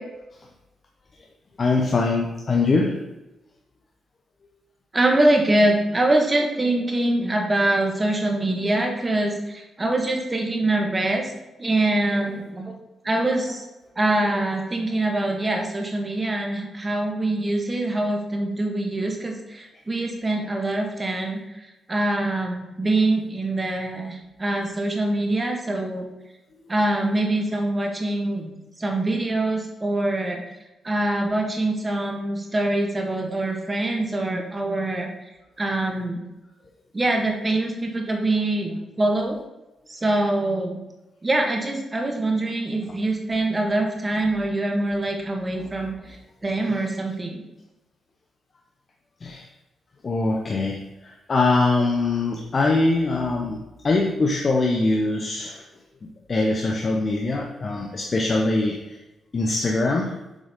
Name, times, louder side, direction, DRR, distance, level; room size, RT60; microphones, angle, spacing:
voice 1, 1.6-3.0 49.2-49.5 50.0-53.6 53.8-55.6 56.3-59.0 59.3-60.2, left 3 dB, 40° left, 0 dB, 0.8 m, -22 dB
voice 2, 4.9-11.3 11.6-12.7 13.0-13.6 14.0-21.4 21.9-26.1 26.7-28.5 28.8-30.4 30.8-35.1 35.6-36.2 36.9-39.4 39.9-40.8 41.2-45.9 46.4-47.4, right 2 dB, 20° right, 1 dB, 1.4 m, -24 dB
7.4 x 3.9 x 5.2 m, 1.0 s
cardioid pair, 110°, 0 cm